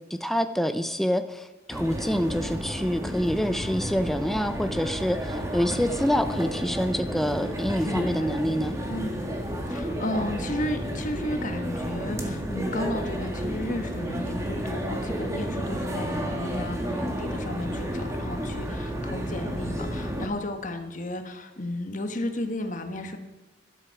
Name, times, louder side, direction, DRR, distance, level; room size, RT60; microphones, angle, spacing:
voice 1, 0.1-8.7, equal, ahead, 9 dB, 0.5 m, -26 dB
sound 1, 1.7-20.3, equal, 15° right, 1.8 m, -31 dB
voice 2, 7.8-8.3 8.9-9.2 9.7-23.2, left 1 dB, 40° left, 7 dB, 1.4 m, -33 dB
12.0 x 11.5 x 5.9 m, 1.1 s
head